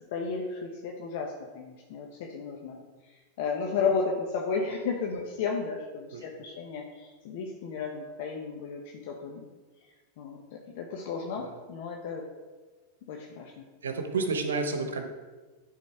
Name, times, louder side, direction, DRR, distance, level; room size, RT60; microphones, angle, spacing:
voice 1, 0.1-2.8 3.4-9.5 10.2-12.2 13.1-13.7, left 5 dB, 65° left, 0 dB, 1.0 m, -33 dB
voice 2, 13.8-15.1, right 4 dB, 90° right, 6 dB, 0.9 m, -31 dB
9.8 x 4.1 x 4.3 m, 1.3 s
hypercardioid pair, 110°, 0 cm